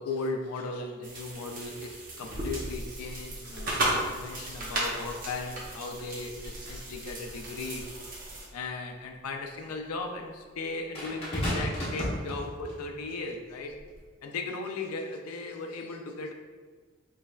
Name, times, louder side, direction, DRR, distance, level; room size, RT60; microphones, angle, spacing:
voice 1, 0.0-7.9 8.5-13.8 14.2-16.3, left 3 dB, 90° left, 3 dB, 0.4 m, -37 dB
sound 1, 1.0-8.5, right 1 dB, 40° right, 0.7 m, -35 dB
sound 2, 10.9-12.8 13.8-14.0, equal, 25° left, 1.0 m, -33 dB
4.0 x 3.2 x 2.3 m, 1.5 s
head